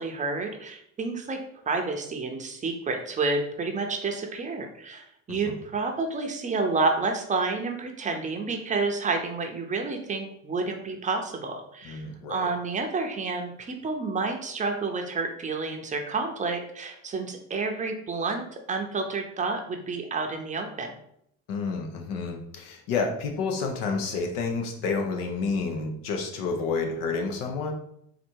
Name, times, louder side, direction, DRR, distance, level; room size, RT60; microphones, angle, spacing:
voice 1, 0.0-1.4 1.7-20.9, right 3 dB, 25° right, 3 dB, 0.6 m, -30 dB
voice 2, 11.8-12.5 21.5-27.7, left 4 dB, 85° left, 3 dB, 1.0 m, -29 dB
4.2 x 2.6 x 4.4 m, 0.73 s
cardioid pair, 130°, 33 cm